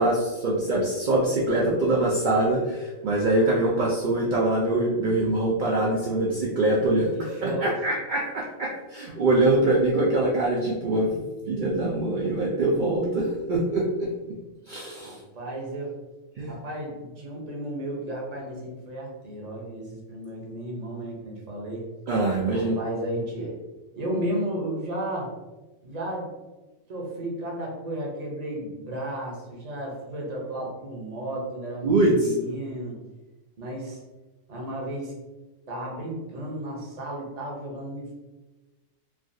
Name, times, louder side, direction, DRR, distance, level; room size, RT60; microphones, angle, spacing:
voice 1, 0.0-11.1 11.5-14.1 14.7-15.2 16.4-16.5 22.1-22.8 31.8-32.3, right 2 dB, 85° right, -4 dB, 0.4 m, -24 dB
voice 2, 7.1-7.7 15.0-16.0 16.5-21.9 22.5-23.6 23.9-25.3 25.8-26.3 26.9-33.0 33.6-34.0 34.5-35.1 35.7-38.1, right 1 dB, 40° right, -2 dB, 0.6 m, -33 dB
3.3 x 2.3 x 2.6 m, 1.1 s
omnidirectional pair, 1.4 m